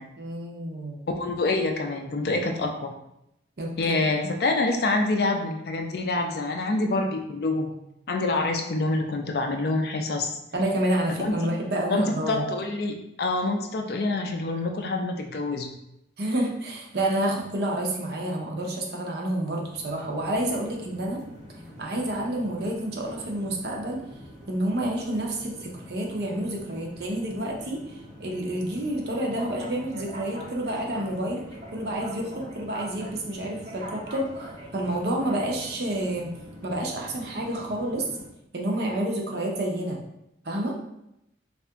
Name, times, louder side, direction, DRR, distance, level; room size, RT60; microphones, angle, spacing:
voice 1, 0.2-1.0 3.6-4.3 10.5-12.4 16.2-21.3 21.8-24.0 24.5-31.4 31.7-36.3 36.6-38.1 38.5-40.0 40.4-40.8, right 1 dB, 55° right, 0 dB, 0.6 m, -29 dB
voice 2, 1.1-2.9 3.8-7.7 8.1-10.4 11.2-11.5 11.9-15.7, left 2 dB, 55° left, 3 dB, 0.4 m, -26 dB
sound 1, 19.4-38.3, equal, 40° right, 1.0 m, -44 dB
2.7 x 2.4 x 3.4 m, 0.83 s
head